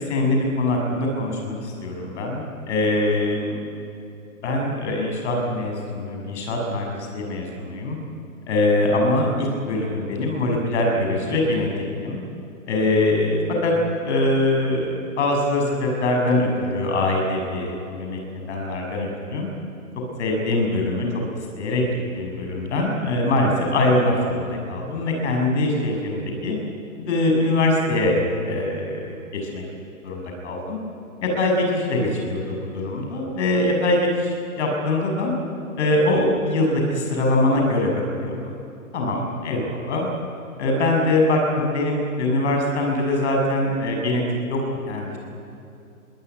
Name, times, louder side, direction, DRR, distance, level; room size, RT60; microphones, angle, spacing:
voice 1, 0.0-3.6 4.4-8.0 8.5-11.7 12.0-12.2 12.7-13.7 14.0-19.5 20.2-21.1 21.6-21.8 22.1-26.6 27.0-28.2 28.4-29.1 29.5-29.6 30.0-30.8 31.2-35.3 35.8-37.9 38.2-38.4 38.9-40.1 40.6-44.2 44.5-44.6 44.9-45.2, left 2 dB, 50° left, 2 dB, 7.0 m, -23 dB
23.5 x 18.0 x 9.5 m, 2.7 s
figure-of-eight pair, 130°, 45 cm